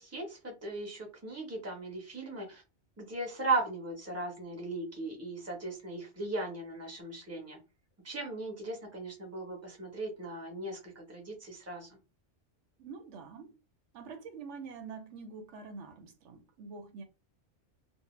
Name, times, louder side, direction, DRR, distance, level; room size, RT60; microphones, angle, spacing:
voice 1, 0.0-2.6 3.0-7.6 8.0-11.9, right 2 dB, 15° right, 0.8 m, -37 dB
voice 2, 12.8-13.5 13.9-17.0, right 5 dB, 80° right, 0.9 m, -46 dB
2.6 x 2.0 x 3.0 m
omnidirectional pair, 1.2 m